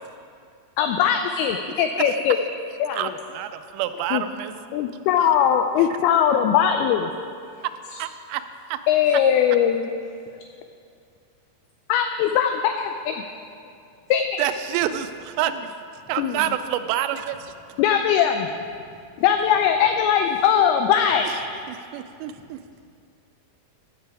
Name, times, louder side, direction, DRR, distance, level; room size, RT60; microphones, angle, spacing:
voice 1, 0.8-2.4 2.8-3.1 4.1-4.2 4.7-7.1 8.9-9.9 11.9-13.2 14.1-14.4 16.2-16.4 17.8-18.5 19.2-21.3, left 8 dB, 85° left, 6 dB, 2.2 m, -20 dB
voice 2, 2.9-4.5 5.2-5.3 8.0-8.4 8.7-8.8 9.1-9.2 14.4-15.8 16.1-17.5 21.7-22.6, right 11 dB, 90° right, 10 dB, 2.7 m, -28 dB
voice 3, 18.7-19.2 21.7-22.3 22.7-22.8, right 1 dB, 35° left, -8 dB, 3.2 m, -55 dB
14.0 x 7.6 x 4.7 m, 2.4 s
omnidirectional pair, 4.9 m